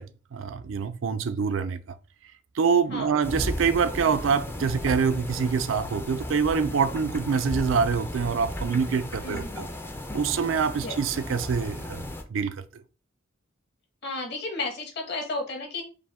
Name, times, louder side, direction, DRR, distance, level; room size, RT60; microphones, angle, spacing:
voice 1, 0.0-2.0 2.5-9.7 10.1-12.0 12.3-12.8, right 6 dB, 70° right, 0.4 m, -25 dB
sound 1, 3.2-12.2, left 1 dB, 10° left, 0.4 m, -35 dB
voice 2, 9.2-9.6 10.8-11.0 14.0-15.8, left 2 dB, 55° left, 1.3 m, -33 dB
5.0 x 2.2 x 3.4 m
head